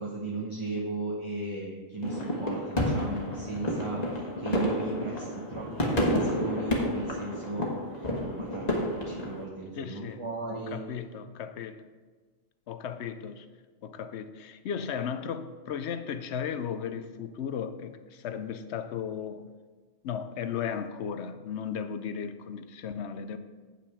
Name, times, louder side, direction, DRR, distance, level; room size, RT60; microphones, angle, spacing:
voice 1, 0.0-10.8, right 2 dB, 25° right, -2 dB, 0.9 m, -36 dB
sound 1, 2.0-9.4, left 1 dB, 30° left, 1.4 m, -30 dB
voice 2, 9.7-10.2 10.5-11.8 12.7-13.5 13.8-19.4 20.0-23.4, left 7 dB, 65° left, 10 dB, 0.8 m, -35 dB
8.9 x 5.9 x 4.8 m, 1.4 s
omnidirectional pair, 1.4 m